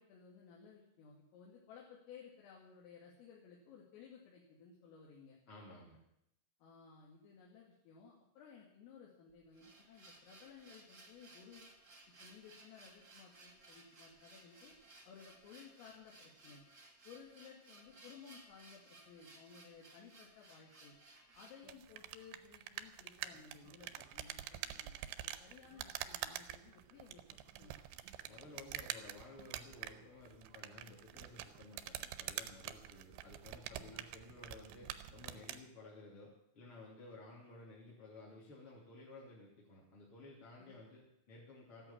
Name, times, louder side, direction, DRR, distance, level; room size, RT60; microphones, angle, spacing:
voice 1, 0.0-5.4 6.6-11.7 12.2-14.7 15.1-16.6 17.0-20.9 21.4-27.8 33.7-34.0 40.6-40.8, left 6 dB, 80° left, -2 dB, 4.9 m, -58 dB
voice 2, 5.5-6.0 28.2-41.9, left 2 dB, 30° left, -5 dB, 3.2 m, -55 dB
sound 1, 9.3-21.6, right 2 dB, 30° right, 1.5 m, -60 dB
sound 2, 21.6-35.6, right 12 dB, 80° right, 2.7 m, -46 dB
14.5 x 11.0 x 8.7 m, 0.78 s
omnidirectional pair, 5.8 m